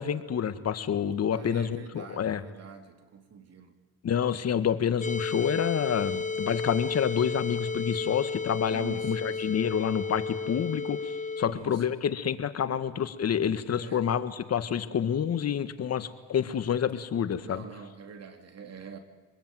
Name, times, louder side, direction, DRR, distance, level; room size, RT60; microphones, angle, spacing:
voice 1, 0.0-2.4 4.0-17.6, left 8 dB, 55° left, 1.7 m, -28 dB
voice 2, 1.3-3.8 8.7-9.5 11.4-11.9 13.7-14.1 17.4-19.0, right 6 dB, 55° right, 3.2 m, -46 dB
sound 1, 5.0-11.5, left 4 dB, 25° left, 1.5 m, -33 dB
25.5 x 20.5 x 9.3 m
cardioid pair, 90°, 30 cm